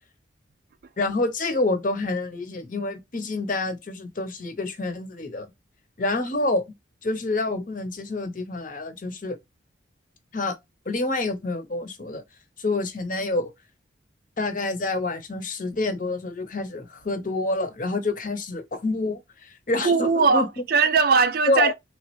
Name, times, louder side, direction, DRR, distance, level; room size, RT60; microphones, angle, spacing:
voice 1, 1.0-5.5 6.0-6.6 7.0-9.4 10.3-10.6 10.9-12.2 12.6-13.5 14.4-20.5 21.5-21.7, left 2 dB, 45° left, 0.9 m, -27 dB
voice 2, 19.8-21.7, right 5 dB, 55° right, 0.4 m, -20 dB
3.4 x 3.1 x 3.0 m
head